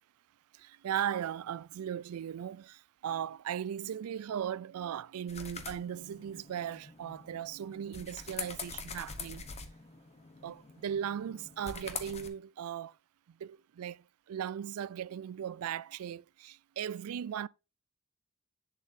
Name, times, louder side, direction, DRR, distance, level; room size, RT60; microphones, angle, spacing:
voice 1, 0.5-9.5 10.4-13.0 13.3-17.5, right 9 dB, 85° right, 0.3 m, -38 dB
sound 1, 5.3-12.3, left 5 dB, 30° left, 0.9 m, -45 dB
8.4 x 7.0 x 2.7 m
head